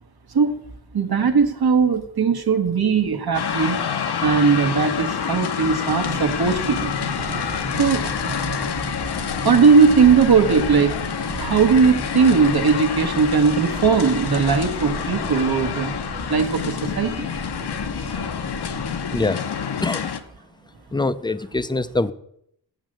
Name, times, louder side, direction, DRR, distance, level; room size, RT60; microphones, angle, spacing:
voice 1, 0.9-3.8 4.2-6.9 7.5-8.1 9.4-11.0 11.4-15.9 16.3-17.3, right 5 dB, 60° right, 6 dB, 1.1 m, -18 dB
sound 1, 3.3-20.2, left 7 dB, 65° left, 0.8 m, -28 dB
sound 2, 6.0-19.3, right 3 dB, 35° right, 1.0 m, -35 dB
voice 2, 19.1-19.4 19.8-20.1 20.9-22.1, left 2 dB, 10° left, 14 dB, 0.4 m, -23 dB
7.3 x 6.2 x 7.6 m, 0.72 s
wide cardioid pair, 85°, 42 cm